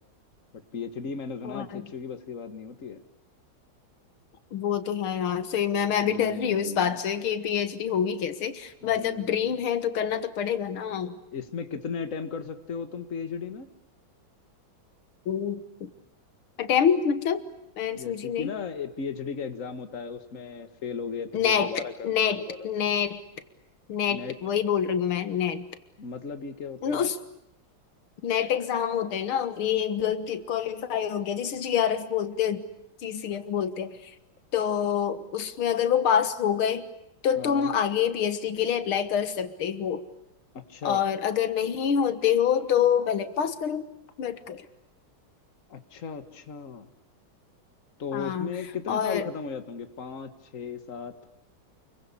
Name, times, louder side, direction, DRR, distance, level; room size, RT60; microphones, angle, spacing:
voice 1, 0.7-3.0 6.0-7.0 8.8-9.5 11.3-13.7 18.0-22.7 24.1-24.4 26.0-27.1 33.3-33.4 37.4-37.7 40.5-41.1 45.7-46.9 48.0-51.1, left 5 dB, 40° left, 8 dB, 2.0 m, -36 dB
voice 2, 1.4-1.9 4.5-11.2 15.3-15.9 16.6-17.4 17.8-18.5 21.3-23.2 23.9-25.6 26.8-27.2 28.2-32.6 33.0-34.1 34.5-36.9 37.2-40.0 40.8-43.9 44.2-44.6 48.1-48.5 48.9-49.3, left 8 dB, 90° left, 11 dB, 2.3 m, -26 dB
29.5 x 23.0 x 8.5 m, 0.84 s
omnidirectional pair, 2.2 m